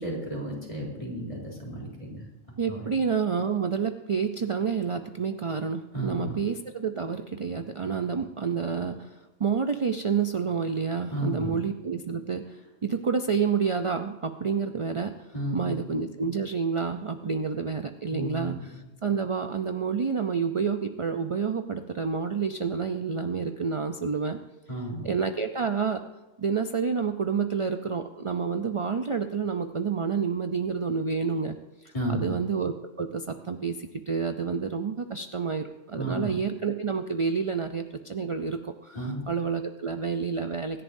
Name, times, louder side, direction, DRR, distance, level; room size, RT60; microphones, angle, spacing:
voice 1, 0.0-2.3 2.7-2.8 5.9-6.4 11.1-11.6 15.3-15.8 18.1-18.8 24.7-25.1 31.9-32.3 36.0-36.3 38.9-39.3, right 1 dB, 25° left, -3 dB, 3.6 m, -33 dB
voice 2, 2.6-9.1 9.4-15.1 15.5-24.4 25.0-26.0 26.4-31.6 31.8-40.8, right 5 dB, 45° right, 7 dB, 0.4 m, -29 dB
25.0 x 11.0 x 2.7 m, 1.1 s
omnidirectional pair, 1.3 m